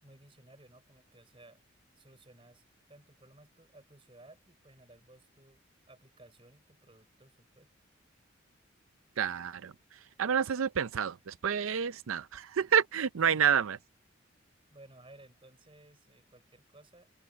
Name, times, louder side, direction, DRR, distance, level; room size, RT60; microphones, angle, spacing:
voice 1, 0.0-1.6 2.0-2.6 2.9-7.7 13.2-13.6 14.7-17.1, right 1 dB, 25° right, 5.2 m, -58 dB
voice 2, 9.2-13.8, right 7 dB, 85° right, 0.5 m, -29 dB
open air
head